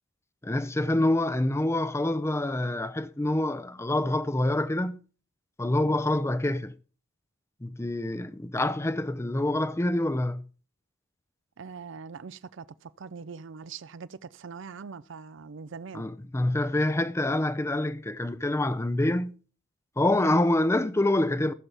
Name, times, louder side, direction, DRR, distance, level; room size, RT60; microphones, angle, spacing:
voice 1, 0.4-5.0 5.6-6.8 7.6-10.4 15.9-19.4 20.0-21.5, left 1 dB, 15° left, 0.5 m, -26 dB
voice 2, 11.6-16.0 20.2-20.4, right 5 dB, 65° right, 0.5 m, -42 dB
15.0 x 7.2 x 3.4 m
head